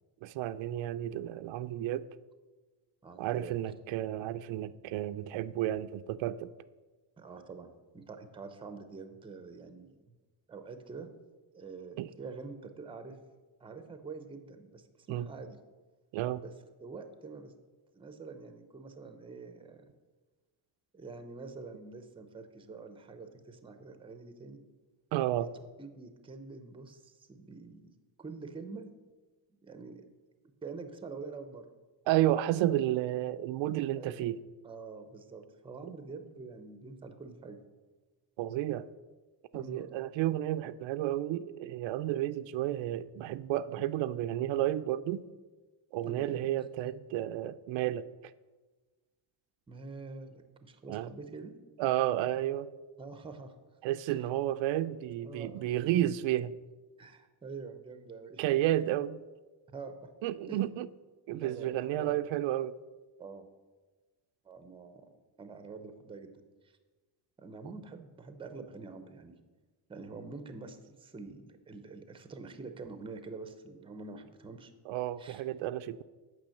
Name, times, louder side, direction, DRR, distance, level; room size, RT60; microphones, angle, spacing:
voice 1, 0.2-2.1 3.2-6.5 12.0-12.1 15.1-15.3 16.1-16.4 25.1-25.5 32.1-34.4 38.4-38.9 39.5-45.3 45.9-48.1 50.9-51.1 51.8-52.7 53.8-56.5 58.4-59.2 60.2-60.9 61.3-62.7 74.9-76.0, right 13 dB, 80° right, 12 dB, 0.5 m, -31 dB
voice 2, 3.0-3.6 7.2-10.2 10.5-11.1 11.5-13.2 13.6-15.6 16.4-16.5 16.8-17.5 17.9-19.9 20.9-24.6 25.3-25.5 25.8-28.9 29.6-30.0 30.6-31.7 34.0-34.2 34.6-37.6 39.5-39.9 46.0-46.5 49.7-51.6 53.0-53.5 54.1-54.3 55.2-55.8 57.0-58.8 59.7-60.1 60.5-60.6 61.3-62.2 63.2-63.5 64.4-65.1 65.4-66.8 67.4-69.4 69.9-74.7 75.2-75.4, right 4 dB, 10° right, 8 dB, 0.6 m, -46 dB
9.0 x 6.2 x 6.4 m, 1.3 s
cardioid pair, 165°, 46 cm